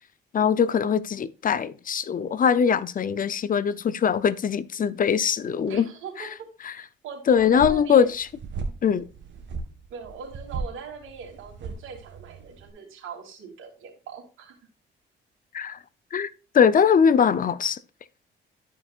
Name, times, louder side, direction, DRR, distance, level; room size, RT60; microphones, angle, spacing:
voice 1, 0.3-5.9 7.3-8.3 8.8-9.1 15.5-15.8 16.1-16.3 16.5-17.8, left 7 dB, 45° left, 0.6 m, -21 dB
voice 2, 5.7-6.5 7.0-8.1 9.9-14.5, right 6 dB, 85° right, 3.0 m, -40 dB
sound 1, 7.3-12.7, right 4 dB, 70° right, 1.7 m, -37 dB
12.5 x 5.2 x 2.4 m
cardioid pair, 90°, 20 cm